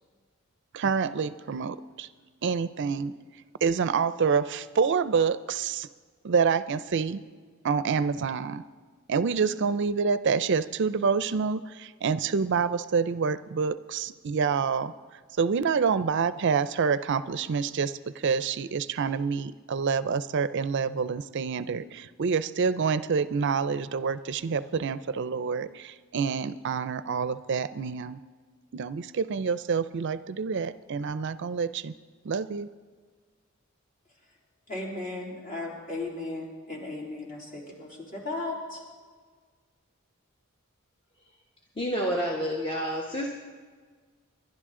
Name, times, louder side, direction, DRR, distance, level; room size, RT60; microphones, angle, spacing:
voice 1, 0.7-2.1 2.4-3.1 3.6-5.9 6.2-7.2 7.6-8.6 9.1-14.9 15.4-28.2 28.7-31.9 32.2-32.7, right 5 dB, 60° right, 14 dB, 0.4 m, -27 dB
voice 2, 34.7-38.8, left 2 dB, 40° left, -2 dB, 3.5 m, -36 dB
voice 3, 41.8-43.3, equal, 25° left, -1 dB, 1.2 m, -29 dB
28.0 x 11.5 x 3.7 m, 1.6 s
head